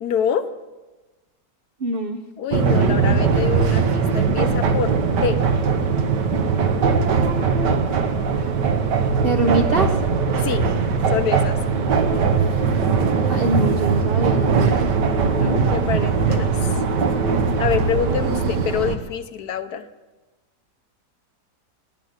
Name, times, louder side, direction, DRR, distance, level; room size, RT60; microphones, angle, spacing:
voice 1, 0.0-0.4 2.4-4.9 5.2-5.4 10.4-10.7 11.1-11.6 15.3-16.7 17.6-19.8, left 8 dB, 65° left, 10 dB, 1.3 m, -26 dB
voice 2, 1.8-2.2 9.2-10.0 13.3-14.9, right 2 dB, 55° right, 4 dB, 0.6 m, -23 dB
sound 1, 2.5-19.0, right 5 dB, 80° right, 1.7 m, -20 dB
16.5 x 10.5 x 8.0 m, 1.2 s
omnidirectional pair, 1.8 m